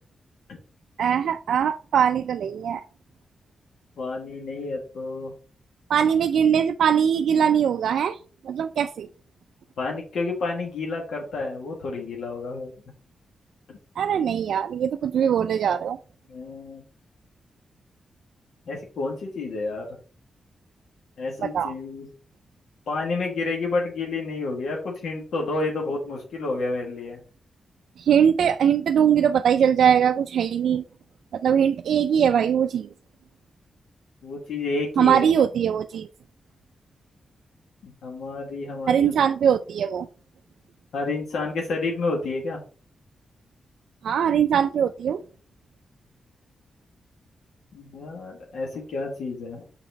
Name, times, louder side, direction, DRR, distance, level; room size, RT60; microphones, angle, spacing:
voice 1, 1.0-2.8 5.9-8.2 8.4-9.1 14.0-16.0 21.4-21.7 28.0-30.8 31.3-32.9 35.0-36.1 38.9-40.1 44.0-45.2, right 8 dB, 85° right, 0.3 m, -21 dB
voice 2, 4.0-5.3 9.8-12.7 16.3-16.8 18.7-19.9 21.2-22.0 22.9-27.2 34.2-35.2 37.8-39.1 40.9-42.6 47.7-49.6, left 3 dB, 90° left, 1.6 m, -30 dB
5.8 x 4.2 x 4.0 m
wide cardioid pair, 160°, 0 cm